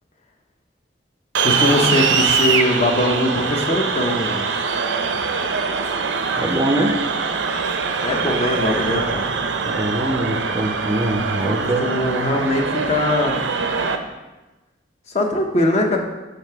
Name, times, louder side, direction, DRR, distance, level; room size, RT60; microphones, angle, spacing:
voice 1, 1.4-4.5 8.0-9.4 11.4-13.4 15.1-16.0, left 1 dB, 35° left, 2 dB, 0.7 m, -21 dB
sound 1, 1.4-14.0, right 5 dB, 80° right, 0.5 m, -23 dB
voice 2, 6.4-6.9 9.6-11.9, right 1 dB, 20° right, 3 dB, 0.5 m, -23 dB
5.3 x 3.3 x 5.6 m, 1.1 s
head